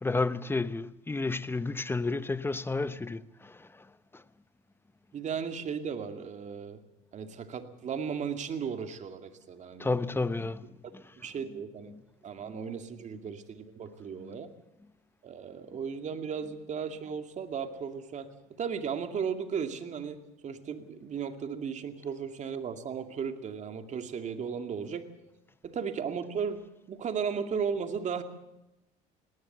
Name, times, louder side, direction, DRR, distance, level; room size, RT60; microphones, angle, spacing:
voice 1, 0.0-4.2 9.8-11.0 11.9-12.0 14.2-14.4, left 3 dB, 15° left, 0.9 m, -32 dB
voice 2, 5.1-6.8 7.1-9.9 11.2-11.9 12.2-14.5 15.2-18.3 18.6-20.2 20.4-25.0 25.6-26.6 26.9-28.2, right 6 dB, 45° right, 2.4 m, -35 dB
18.5 x 18.5 x 8.0 m
supercardioid pair, 90°, 17 cm